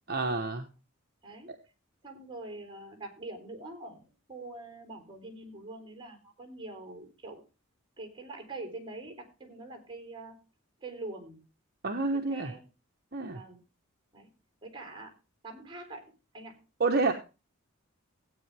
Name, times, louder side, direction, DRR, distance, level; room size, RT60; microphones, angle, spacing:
voice 1, 0.1-0.7 11.8-12.5 13.1-13.4 16.8-17.1, right 3 dB, 50° right, 4 dB, 1.1 m, -28 dB
voice 2, 2.0-7.4 8.0-10.4 10.8-11.4 12.1-12.7 13.3-13.6 14.1-14.3 14.6-15.1 15.4-16.6, right 2 dB, 25° right, 5 dB, 3.7 m, -44 dB
16.0 x 9.0 x 3.4 m, 0.31 s
head